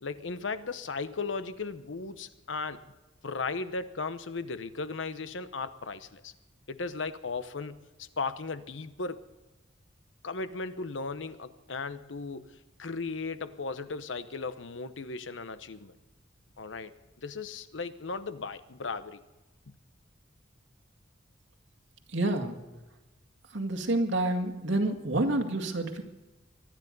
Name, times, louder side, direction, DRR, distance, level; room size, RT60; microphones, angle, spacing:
voice 1, 0.0-2.9 3.2-6.3 6.7-9.2 10.2-15.9 16.6-19.2, left 4 dB, 90° left, 12 dB, 0.9 m, -36 dB
voice 2, 22.1-22.6 23.5-26.0, right 2 dB, 90° right, 4 dB, 2.2 m, -28 dB
24.0 x 10.5 x 5.4 m, 1.1 s
head